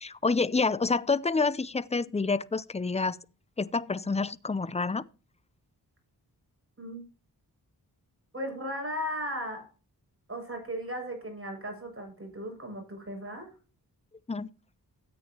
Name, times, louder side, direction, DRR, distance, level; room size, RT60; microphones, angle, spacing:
voice 1, 0.0-3.2 3.6-5.0 14.3-14.5, left 4 dB, 15° left, 0.5 m, -28 dB
voice 2, 8.3-9.7 10.3-13.5, equal, 35° right, 6.7 m, -36 dB
13.5 x 9.1 x 2.9 m
cardioid pair, 55°, 38 cm